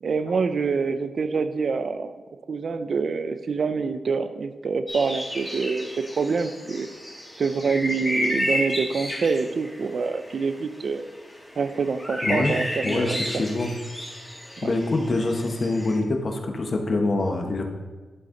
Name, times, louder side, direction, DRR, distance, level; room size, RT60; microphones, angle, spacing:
voice 1, 0.0-2.1 2.5-5.9 6.2-6.9 7.4-11.0 11.6-13.4, right 4 dB, 60° right, 11 dB, 0.4 m, -26 dB
sound 1, 4.9-16.0, left 1 dB, ahead, 2.2 m, -32 dB
voice 2, 12.2-12.5 12.8-13.7 14.6-17.6, left 2 dB, 50° left, 3 dB, 1.0 m, -25 dB
11.0 x 4.0 x 3.8 m, 1.3 s
wide cardioid pair, 100°, 0 cm